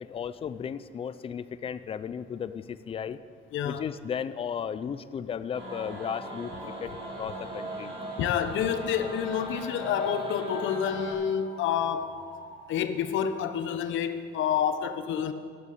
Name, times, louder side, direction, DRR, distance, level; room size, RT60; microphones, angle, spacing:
voice 1, 0.1-3.2 3.6-7.9, left 7 dB, 30° left, 14 dB, 0.5 m, -35 dB
voice 2, 3.5-3.8 8.2-12.1 12.7-15.3, left 8 dB, 80° left, 10 dB, 1.0 m, -28 dB
sound 1, 5.5-11.1, right 1 dB, 25° right, 4.3 m, -38 dB
sound 2, 5.5-6.1 6.6-6.7 10.7-10.9 11.4-13.3, right 1 dB, 50° right, 3.7 m, -48 dB
12.5 x 12.0 x 8.4 m, 2.1 s
cardioid pair, 180°, 20 cm